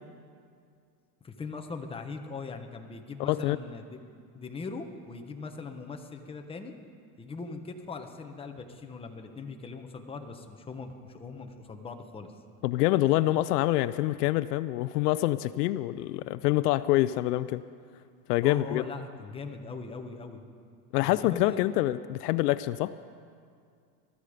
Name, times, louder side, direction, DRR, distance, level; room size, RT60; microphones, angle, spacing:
voice 1, 1.2-4.0 4.3-6.7 7.2-12.3 18.4-20.4 21.0-21.6, left 4 dB, 10° left, 4 dB, 1.0 m, -40 dB
voice 2, 3.2-3.6 12.6-17.6 18.3-18.8 20.9-22.9, left 16 dB, 70° left, 16 dB, 0.6 m, -26 dB
21.0 x 13.5 x 5.0 m, 2.2 s
supercardioid pair, 140°, 48 cm